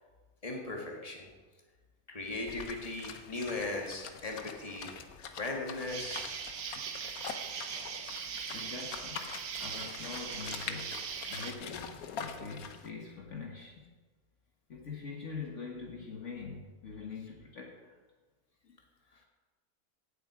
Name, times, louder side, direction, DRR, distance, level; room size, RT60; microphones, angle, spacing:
voice 1, 0.4-1.3 2.1-4.9 5.4-6.4, left 2 dB, 25° left, 0 dB, 2.0 m, -38 dB
sound 1, 2.5-12.9, left 6 dB, 75° left, 1.4 m, -44 dB
Insect, 5.9-11.5, right 7 dB, 60° right, 1.3 m, -40 dB
voice 2, 8.5-9.3 9.5-13.8 14.7-18.0 18.6-18.7, left 4 dB, 55° left, 0 dB, 1.6 m, -44 dB
17.5 x 7.7 x 4.9 m, 1.3 s
omnidirectional pair, 1.6 m